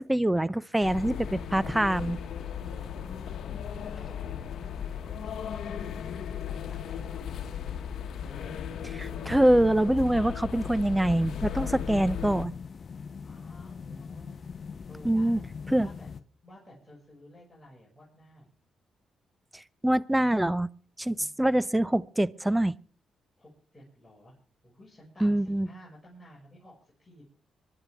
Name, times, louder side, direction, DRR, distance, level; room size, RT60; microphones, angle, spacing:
voice 1, 0.0-2.2 8.8-12.5 15.0-15.4 15.7-15.9 19.5-20.7 21.0-22.7 25.2-25.7, right 1 dB, 10° right, 20 dB, 0.6 m, -25 dB
sound 1, 0.8-12.5, left 8 dB, 70° left, 1.3 m, -36 dB
voice 2, 2.6-3.2 3.7-7.7 13.2-14.4 14.9-15.5 15.8-16.1 16.4-18.5 21.1-21.4 23.4-24.3 24.6-27.2, left 1 dB, 15° left, -6 dB, 6.3 m, -53 dB
sound 2, 11.0-16.2, left 5 dB, 50° left, 0.7 m, -41 dB
25.0 x 11.0 x 3.6 m, 0.41 s
cardioid pair, 70°, 0 cm